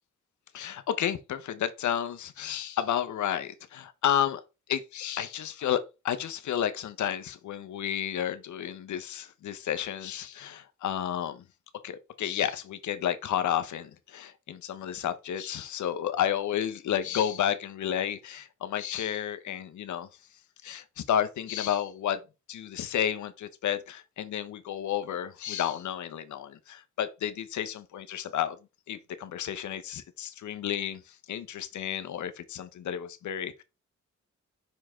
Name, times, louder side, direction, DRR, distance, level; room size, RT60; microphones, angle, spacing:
voice 1, 0.5-4.4 4.7-11.4 11.8-20.1 20.6-22.2 22.5-28.6 28.9-33.6, left 10 dB, 80° left, 1.0 m, -31 dB
5.8 x 4.7 x 3.7 m
cardioid pair, 60°, 29 cm